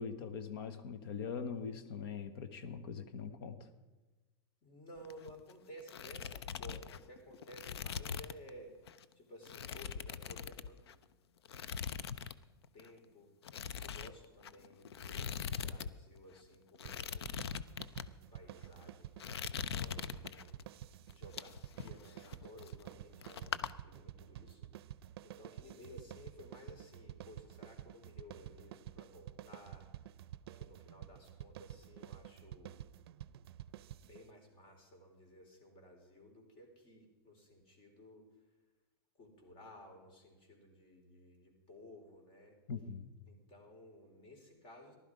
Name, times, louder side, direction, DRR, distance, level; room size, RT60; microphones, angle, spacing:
voice 1, 0.0-3.6 42.7-43.1, left 6 dB, 70° left, 11 dB, 1.2 m, -42 dB
voice 2, 4.6-11.0 12.7-13.3 13.8-17.4 18.0-20.5 21.1-24.7 25.0-29.9 30.6-33.0 33.4-33.5 34.0-38.3 39.2-42.6 43.3-44.9, equal, 40° left, 2 dB, 4.1 m, -56 dB
sound 1, 5.0-5.5 5.8-8.5 8.9-9.0 9.5-11.0 11.5-12.4 12.6-12.9 13.4-16.2 16.7-18.1 18.6-18.9 19.2-20.6 21.1-23.0 23.2-23.7, left 7 dB, 90° left, 0.5 m, -42 dB
sound 2, 16.8-34.3, right 12 dB, 75° right, 0.5 m, -51 dB
15.0 x 11.5 x 4.9 m, 1.2 s
hypercardioid pair, 125°, 13 cm